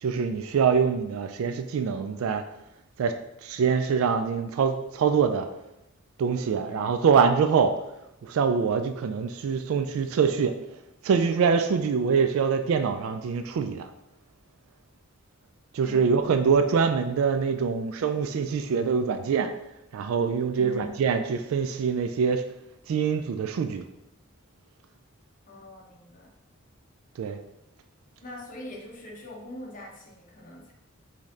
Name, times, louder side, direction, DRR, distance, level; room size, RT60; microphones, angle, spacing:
voice 1, 0.0-2.4 3.0-3.1 3.4-5.5 6.2-7.7 8.2-10.5 11.0-13.9 15.7-19.5 19.9-22.4 22.9-23.8 27.2-27.4, right 6 dB, 75° right, 8 dB, 0.3 m, -24 dB
voice 2, 15.8-16.4 20.5-21.1 25.5-26.3 28.2-30.7, left 1 dB, 40° left, -2 dB, 1.0 m, -43 dB
5.1 x 2.8 x 3.6 m, 0.86 s
head